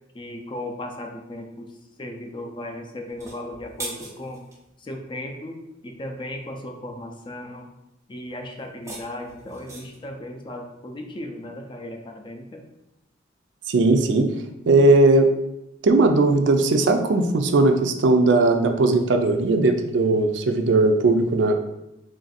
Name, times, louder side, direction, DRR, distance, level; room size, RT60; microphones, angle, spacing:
voice 1, 0.1-4.4 4.8-7.7 8.1-12.6, left 1 dB, 25° left, 3 dB, 0.4 m, -36 dB
sound 1, 3.1-4.6 8.6-10.1, right 2 dB, 15° right, 0.7 m, -39 dB
voice 2, 13.7-14.3 14.7-15.3 15.8-21.5, right 2 dB, 65° right, 6 dB, 0.4 m, -18 dB
3.2 x 2.5 x 4.0 m, 0.87 s
head